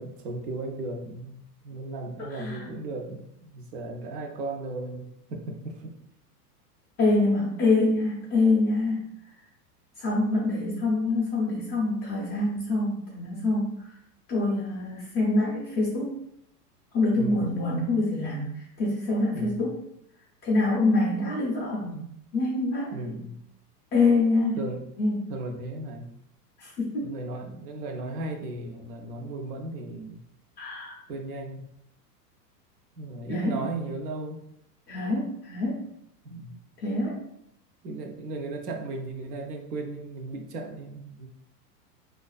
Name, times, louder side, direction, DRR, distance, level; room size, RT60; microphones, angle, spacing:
voice 1, 0.0-5.9 17.1-17.6 19.3-19.7 22.9-23.4 24.6-24.9 25.3-26.1 27.0-30.2 31.1-31.7 33.0-34.4 36.2-36.5 37.8-41.3, right 2 dB, 75° right, 3 dB, 0.7 m, -36 dB
voice 2, 2.3-2.7 7.0-9.1 10.0-13.8 14.3-16.2 16.9-18.5 18.8-19.8 20.4-22.0 22.3-22.9 23.9-24.6 25.0-25.3 26.6-27.1 30.6-31.0 33.3-33.5 34.9-35.9 36.8-37.2, left 2 dB, 20° left, -4 dB, 0.4 m, -25 dB
2.3 x 2.3 x 2.2 m, 0.76 s
hypercardioid pair, 115°, 48 cm